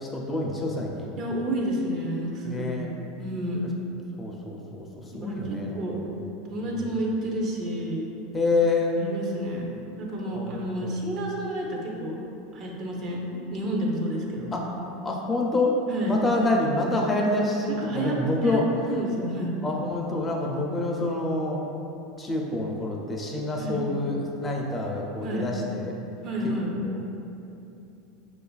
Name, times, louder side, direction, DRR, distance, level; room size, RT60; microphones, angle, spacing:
voice 1, 0.0-1.1 2.5-2.9 4.2-4.9 5.1-5.8 6.6-6.8 8.3-9.0 10.3-10.9 14.5-14.7 15.0-15.8 16.1-18.6 19.6-21.6 22.2-25.9 26.8-27.0, left 2 dB, 20° left, -1 dB, 0.4 m, -27 dB
voice 2, 1.2-3.6 5.1-6.0 6.5-8.0 9.0-9.7 10.0-12.2 12.5-14.5 15.9-16.2 17.7-18.2 18.4-19.5 23.6-23.8 25.2-25.5 26.2-26.7, right 1 dB, 45° right, -2 dB, 0.6 m, -30 dB
4.9 x 2.4 x 2.3 m, 2.8 s
hypercardioid pair, 100°, 0 cm